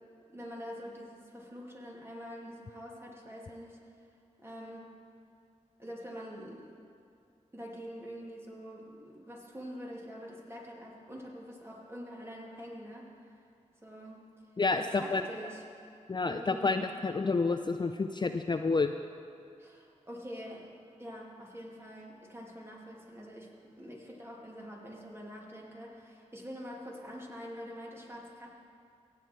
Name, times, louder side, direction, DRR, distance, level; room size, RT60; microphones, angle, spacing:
voice 1, 0.3-3.8 4.4-4.9 5.8-6.7 7.5-13.3 13.8-14.2 14.7-15.6 16.3-16.8 19.6-20.7 21.0-28.5, equal, 20° right, -2 dB, 2.6 m, -45 dB
voice 2, 14.6-15.2 16.1-18.9, left 3 dB, 35° left, 7 dB, 0.5 m, -29 dB
16.5 x 8.4 x 4.5 m, 2.5 s
cardioid pair, 50°, 13 cm